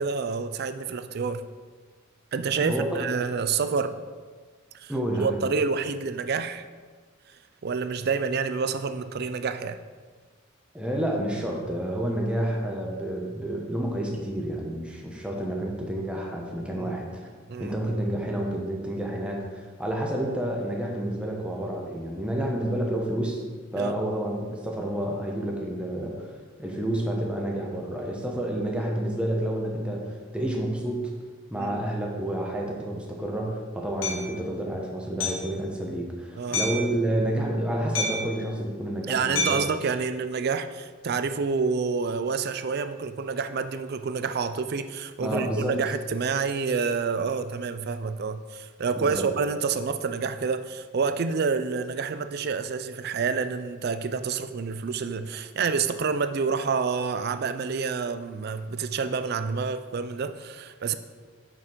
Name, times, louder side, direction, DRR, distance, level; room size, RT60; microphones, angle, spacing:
voice 1, 0.0-1.5 2.3-4.0 4.7-4.9 5.2-6.6 7.6-9.8 16.7-17.0 17.5-17.7 23.8-23.9 31.6-31.8 36.3-36.7 39.1-60.9, right 5 dB, 50° right, 11 dB, 0.4 m, -28 dB
voice 2, 4.9-5.4 10.7-17.3 17.6-23.4 23.7-26.3 26.6-31.0 31.5-39.7 45.2-45.8 49.0-49.3, right 1 dB, 5° right, -1 dB, 1.0 m, -29 dB
Hammer, 34.0-34.2 35.2-35.5 36.5-36.9 38.0-38.4 39.4-39.7, left 2 dB, 75° left, 1.8 m, -28 dB
6.6 x 6.2 x 4.5 m, 1.5 s
head